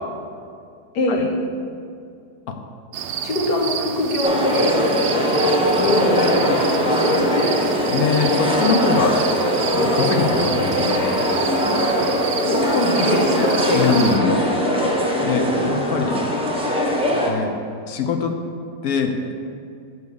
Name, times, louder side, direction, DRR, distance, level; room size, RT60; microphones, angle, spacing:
voice 1, 0.9-1.3 3.2-4.8 5.8-7.6 12.4-14.4, left 1 dB, 85° left, 0 dB, 1.8 m, -23 dB
sound 1, 2.9-14.2, right 8 dB, 75° right, 0.6 m, -30 dB
sound 2, 4.2-17.3, equal, 5° right, 0.6 m, -20 dB
voice 2, 7.8-9.2 9.7-11.2 13.7-14.3 15.2-16.2 17.2-17.5 17.9-18.3 18.8-19.1, left 5 dB, 70° left, 4 dB, 1.1 m, -22 dB
8.0 x 4.7 x 6.8 m, 2.4 s
omnidirectional pair, 1.7 m